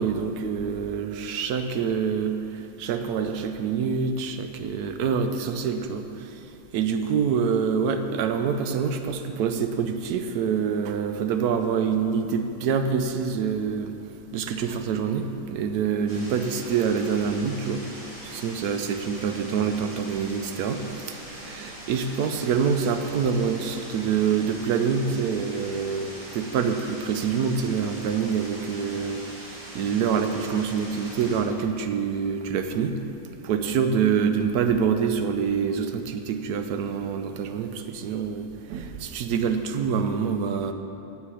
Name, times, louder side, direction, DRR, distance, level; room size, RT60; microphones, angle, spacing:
voice 1, 0.0-2.4 2.8-6.1 6.7-14.0 14.3-17.8 18.2-20.8 21.3-29.2 29.4-32.9 33.4-40.7, right 6 dB, 80° right, 7 dB, 1.1 m, -26 dB
sound 1, 16.1-31.4, right 1 dB, 20° right, 1.6 m, -42 dB
8.5 x 8.2 x 4.9 m, 3.0 s
omnidirectional pair, 1.6 m